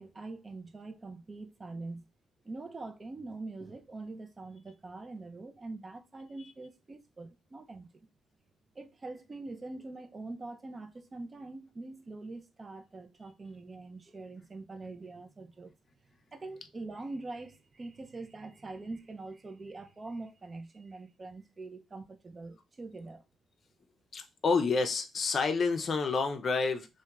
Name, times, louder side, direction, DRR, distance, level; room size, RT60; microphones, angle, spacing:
voice 1, 0.0-2.1 2.4-7.9 8.7-15.7 16.3-23.2, right 3 dB, 30° right, 0.4 m, -44 dB
voice 2, 24.1-26.9, left 4 dB, 45° left, 0.4 m, -29 dB
2.9 x 2.1 x 2.2 m
cardioid pair, 90°, 0 cm